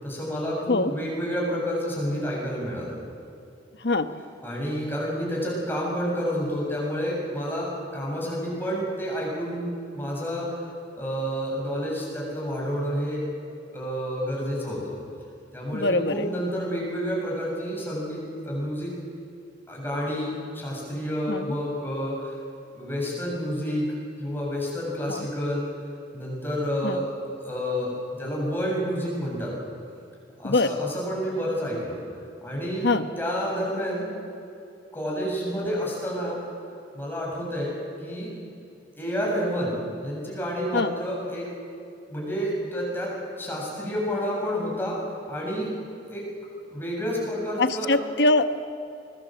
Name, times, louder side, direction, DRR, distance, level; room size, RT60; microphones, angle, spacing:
voice 1, 0.0-3.0 4.4-9.7 9.9-10.7 11.0-13.2 13.7-15.0 15.5-18.9 19.7-22.4 22.7-23.9 24.2-25.7 26.1-27.0 27.4-29.5 30.4-32.0 32.4-32.9 33.2-34.1 34.9-36.4 36.9-38.3 39.0-41.5 42.1-43.1 43.4-45.0 45.3-45.7 46.0-46.2 46.7-47.9, equal, 10° left, -3 dB, 7.7 m, -29 dB
voice 2, 15.7-16.3 21.3-21.6 25.1-25.2 26.8-27.0 30.4-30.7 32.8-33.0 40.7-40.9 47.6-48.5, left 2 dB, 65° left, 9 dB, 1.1 m, -23 dB
26.0 x 21.0 x 7.8 m, 2.5 s
head